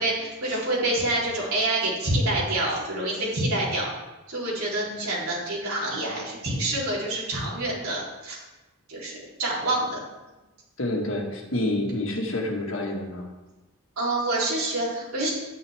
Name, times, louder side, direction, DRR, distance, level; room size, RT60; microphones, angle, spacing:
voice 1, 0.0-3.9 4.3-8.4 8.9-10.0 14.0-15.3, right 1 dB, 85° right, -5 dB, 3.6 m, -27 dB
voice 2, 10.8-13.3, left 1 dB, 65° left, 1 dB, 1.8 m, -28 dB
11.0 x 9.3 x 3.5 m, 1.1 s
head